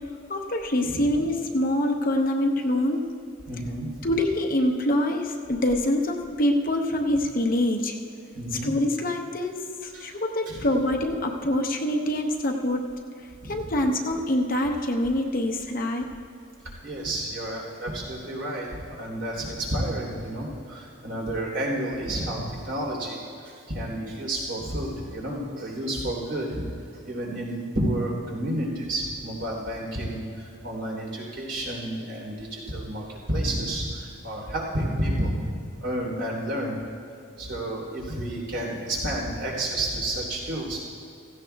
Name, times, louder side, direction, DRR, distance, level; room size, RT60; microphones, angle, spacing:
voice 1, 0.3-3.1 4.0-8.0 8.6-12.9 13.4-16.1, left 1 dB, 40° left, 2 dB, 0.8 m, -25 dB
voice 2, 0.8-1.2 3.5-4.1 8.3-8.7 9.9-10.1 10.4-10.6 13.4-13.7 16.8-23.2 23.4-26.6 27.0-35.5 35.8-36.8 37.4-40.8, right 1 dB, 60° right, -2 dB, 3.3 m, -30 dB
16.5 x 15.5 x 2.3 m, 2.5 s
head